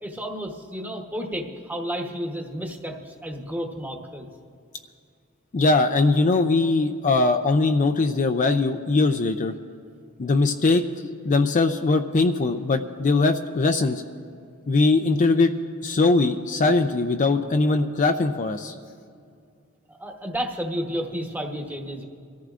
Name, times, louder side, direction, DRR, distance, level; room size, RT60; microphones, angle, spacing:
voice 1, 0.0-4.3 19.9-22.0, equal, 10° right, 2 dB, 1.0 m, -32 dB
voice 2, 5.5-9.5 10.2-14.0 14.7-15.5 15.8-18.7, left 3 dB, 35° left, 6 dB, 0.4 m, -21 dB
24.5 x 14.0 x 2.5 m, 2.3 s
head